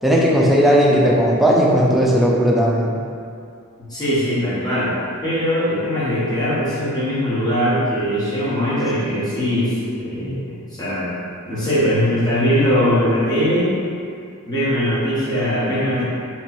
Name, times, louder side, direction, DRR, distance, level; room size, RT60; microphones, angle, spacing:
voice 1, 0.0-3.0 10.2-10.4, equal, ahead, -5 dB, 0.5 m, -16 dB
voice 2, 3.8-4.9 5.2-9.7 10.0-10.5 10.7-11.1 11.5-13.8 14.5-16.0, equal, 20° left, -11 dB, 1.3 m, -20 dB
3.2 x 3.0 x 4.2 m, 2.3 s
head